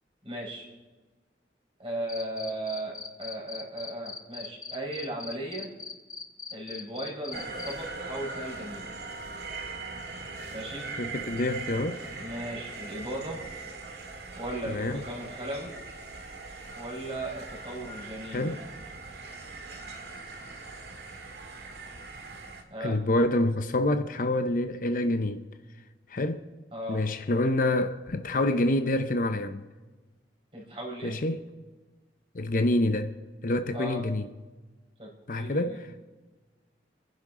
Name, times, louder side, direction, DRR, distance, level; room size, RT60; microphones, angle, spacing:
voice 1, 0.2-0.7 1.8-5.7 6.5-8.9 10.5-10.9 12.2-13.4 14.3-15.7 16.7-18.5 22.7-23.0 26.7-27.0 30.5-31.2 33.7-34.0 35.0-35.8, right 1 dB, 30° right, 4.5 m, -36 dB
Cricket, 2.1-7.7, left 5 dB, 20° left, 1.1 m, -39 dB
sound 1, 7.3-22.6, right 3 dB, 70° right, 1.9 m, -41 dB
voice 2, 11.0-12.0 14.7-15.0 18.3-18.6 22.8-25.4 26.1-26.4 26.9-29.6 31.0-31.4 32.3-33.1 33.4-34.2 35.3-35.9, left 1 dB, 50° left, 0.7 m, -27 dB
28.5 x 10.5 x 3.7 m
head